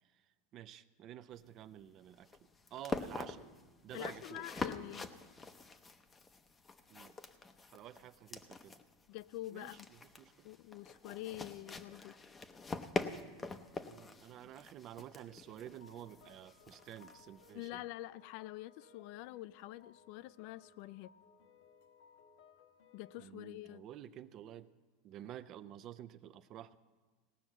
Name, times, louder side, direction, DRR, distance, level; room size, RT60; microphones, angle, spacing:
voice 1, 0.5-2.3 2.7-3.5 3.8-4.6 6.9-7.1 7.7-8.8 9.5-9.8 10.2-10.5 13.9-17.8 23.2-24.7 25.0-26.8, right 11 dB, 40° right, 0.5 m, -50 dB
sound 1, 1.3-17.7, left 4 dB, 15° left, 0.6 m, -45 dB
voice 2, 3.9-5.1 9.1-9.9 10.4-12.2 17.5-21.1 22.9-23.8, left 16 dB, 55° left, 0.3 m, -46 dB
sound 2, 15.2-23.3, left 5 dB, 75° left, 1.2 m, -64 dB
18.0 x 6.1 x 7.8 m
supercardioid pair, 145°, 0 cm